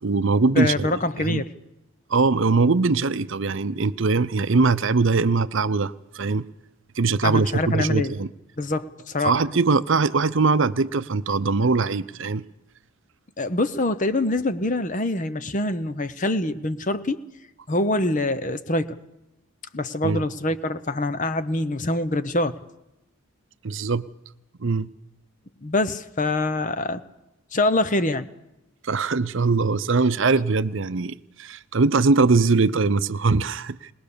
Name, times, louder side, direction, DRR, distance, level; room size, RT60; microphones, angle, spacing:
voice 1, 0.0-1.4 2.1-6.5 7.0-8.3 9.2-12.4 20.0-20.2 23.6-24.1 24.6-24.9 28.8-33.9, right 4 dB, 60° right, 0.7 m, -21 dB
voice 2, 0.5-1.5 7.2-8.1 8.6-9.4 13.4-17.2 17.7-19.0 19.7-22.6 25.6-27.0 27.5-28.3, left 2 dB, 35° left, 0.9 m, -25 dB
21.0 x 20.5 x 6.9 m
head